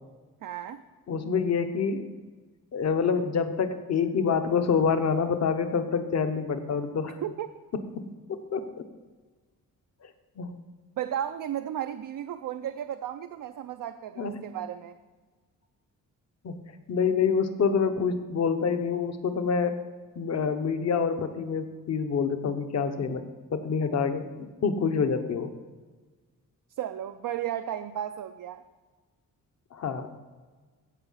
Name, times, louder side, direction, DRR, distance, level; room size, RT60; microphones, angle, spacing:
voice 1, 0.4-0.8 7.2-7.5 11.0-15.0 26.8-28.6, right 10 dB, 70° right, 8 dB, 0.5 m, -34 dB
voice 2, 1.1-2.1 2.7-7.2 7.7-8.9 10.4-10.5 14.2-14.4 16.4-16.6 16.9-19.8 20.2-23.2 23.5-25.5 29.7-30.1, left 6 dB, 50° left, 8 dB, 1.0 m, -27 dB
16.0 x 5.6 x 5.6 m, 1.4 s
wide cardioid pair, 165°, 33 cm